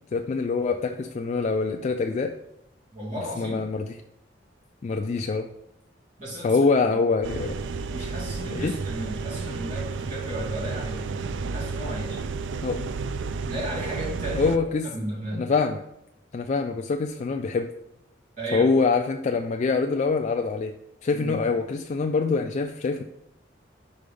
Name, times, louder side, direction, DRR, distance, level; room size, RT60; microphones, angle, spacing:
voice 1, 0.1-2.3 3.4-3.9 4.8-5.5 6.4-7.5 8.5-8.7 12.6-12.9 14.4-14.8 15.3-15.8 16.3-17.7 18.5-20.7 21.0-23.0, left 4 dB, 40° left, 5 dB, 0.3 m, -24 dB
voice 2, 2.9-3.6 6.2-6.6 6.9-7.0 7.9-12.3 13.4-14.5 14.8-15.5 18.4-18.7 21.1-21.4, right 1 dB, 45° right, -5 dB, 2.4 m, -34 dB
sound 1, 7.2-14.6, right 4 dB, 80° right, 0.4 m, -32 dB
5.4 x 4.6 x 5.0 m, 0.82 s
head